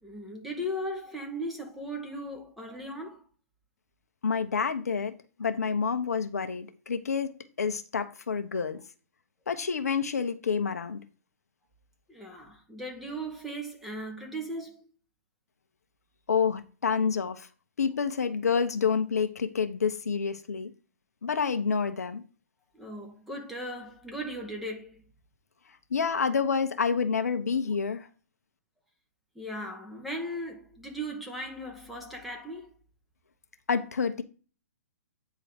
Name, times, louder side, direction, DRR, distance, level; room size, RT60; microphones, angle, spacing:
voice 1, 0.0-3.2 12.1-14.9 22.7-25.0 29.3-32.7, equal, ahead, 1.6 m, -37 dB
voice 2, 4.2-5.1 5.4-7.3 7.6-8.8 9.5-11.0 16.3-17.5 17.8-20.7 21.2-22.2 25.9-28.1 33.7-34.2, left 6 dB, 80° left, 1.1 m, -28 dB
9.3 x 3.9 x 5.1 m
hypercardioid pair, 130°, 8 cm